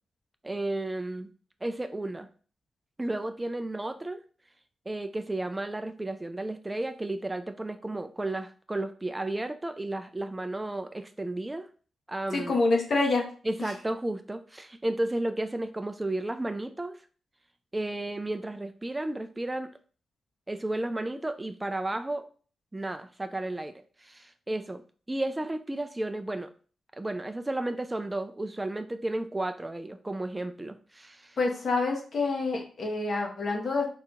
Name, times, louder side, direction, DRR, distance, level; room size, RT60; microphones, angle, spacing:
voice 1, 0.4-1.3 1.6-2.3 3.0-4.2 4.9-11.7 12.1-12.6 13.4-17.0 17.7-19.7 20.5-22.3 22.7-23.7 24.0-24.8 25.1-26.5 27.0-31.4, right 1 dB, 20° right, 8 dB, 0.4 m, -33 dB
voice 2, 12.3-13.2 13.6-13.7 31.4-33.9, left 3 dB, 60° left, 1 dB, 1.2 m, -27 dB
3.8 x 2.8 x 3.6 m, 0.40 s
cardioid pair, 65°, 0 cm